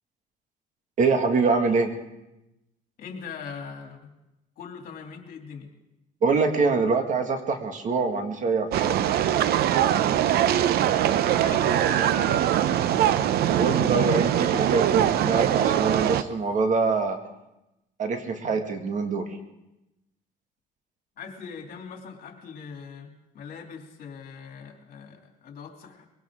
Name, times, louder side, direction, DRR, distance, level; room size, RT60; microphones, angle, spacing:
voice 1, 1.0-1.9 6.2-9.0 13.5-17.2 18.0-19.4, right 4 dB, 50° right, 5 dB, 1.9 m, -24 dB
voice 2, 3.0-4.1 4.6-5.7 11.2-12.4 21.2-26.0, left 6 dB, 60° left, 2 dB, 2.9 m, -41 dB
sound 1, 8.7-16.2, right 11 dB, 70° right, 0.7 m, -22 dB
sound 2, 11.5-17.1, left 3 dB, 25° left, 2.6 m, -47 dB
22.0 x 17.5 x 3.7 m, 0.93 s
cardioid pair, 110°, 17 cm